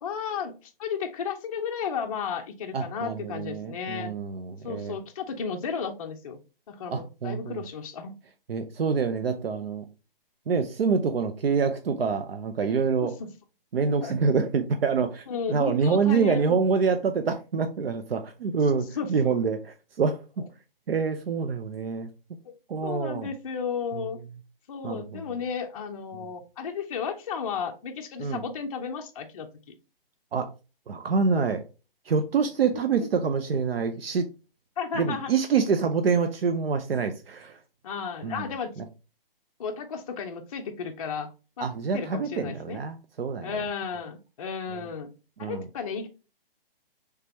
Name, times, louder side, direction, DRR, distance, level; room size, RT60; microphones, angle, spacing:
voice 1, 0.0-4.1 4.6-6.4 6.7-8.2 13.0-13.3 14.0-14.1 15.3-16.4 18.7-19.3 22.4-22.5 22.8-24.2 24.7-29.7 34.8-35.3 37.8-38.7 39.6-41.3 41.6-41.7 41.9-42.8 43.4-45.1 45.4-46.1, left 6 dB, 40° left, 0.4 m, -33 dB
voice 2, 2.7-5.0 6.9-7.6 8.5-9.9 10.5-13.1 13.7-20.4 20.9-22.1 22.7-23.3 23.9-24.0 24.8-25.2 26.1-26.3 28.2-28.4 30.3-30.5 30.9-31.6 32.1-34.3 34.9-37.6 38.2-38.4 38.8-38.9 41.6-43.6 44.7-44.9 45.4-45.6, right 5 dB, 80° right, 0.6 m, -26 dB
3.3 x 2.8 x 3.3 m
hypercardioid pair, 145°, 29 cm